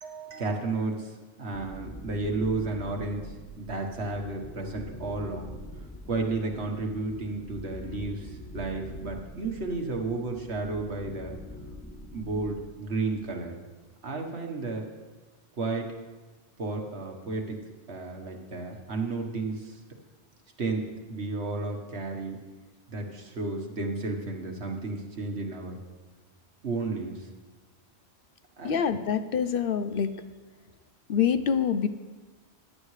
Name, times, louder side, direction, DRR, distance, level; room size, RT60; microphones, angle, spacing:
voice 1, 0.0-5.5 6.1-11.3 12.1-13.5 14.0-14.9 15.6-15.9 16.6-17.6 17.9-19.7 20.6-20.8 21.1-22.4 22.9-25.8 26.6-27.3 28.6-28.8, right 3 dB, 75° right, 2 dB, 1.7 m, -32 dB
sound 1, 1.5-13.3, equal, 10° left, 0.6 m, -44 dB
voice 2, 28.6-30.1 31.1-31.9, left 7 dB, 65° left, 11 dB, 0.7 m, -25 dB
15.5 x 10.5 x 3.3 m, 1.3 s
omnidirectional pair, 1.1 m